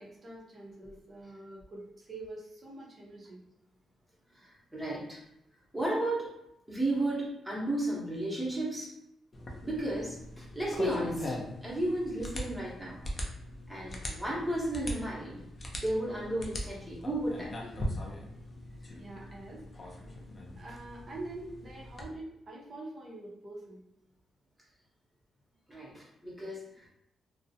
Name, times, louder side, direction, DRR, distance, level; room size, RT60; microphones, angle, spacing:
voice 1, 0.0-3.4 19.0-20.1 20.6-23.8, right 2 dB, 40° right, -3 dB, 0.6 m, -45 dB
voice 2, 4.3-5.2 5.7-6.3 6.7-8.9 9.6-11.4 11.6-13.0 13.7-15.4 15.8-17.7 18.8-18.9 25.7-26.9, right 1 dB, 5° right, -6 dB, 0.8 m, -34 dB
sound 1, 9.3-22.1, left 1 dB, 30° left, 0.4 m, -40 dB
2.4 x 2.0 x 2.7 m, 0.81 s
cardioid pair, 145°, 0 cm